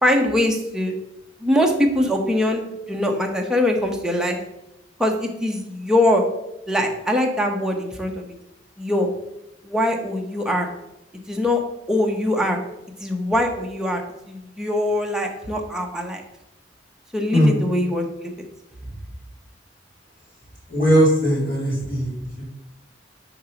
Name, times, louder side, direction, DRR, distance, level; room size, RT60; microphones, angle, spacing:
voice 1, 0.0-1.0 1.4-4.4 5.0-6.2 6.7-8.2 8.8-9.1 9.6-10.7 11.3-11.6 11.9-12.6 13.0-14.0 14.3-16.2 17.1-18.3, left 1 dB, 5° right, 1 dB, 0.7 m, -22 dB
voice 2, 20.7-22.1, equal, 40° left, -10 dB, 2.4 m, -18 dB
5.4 x 3.9 x 5.7 m, 0.90 s
head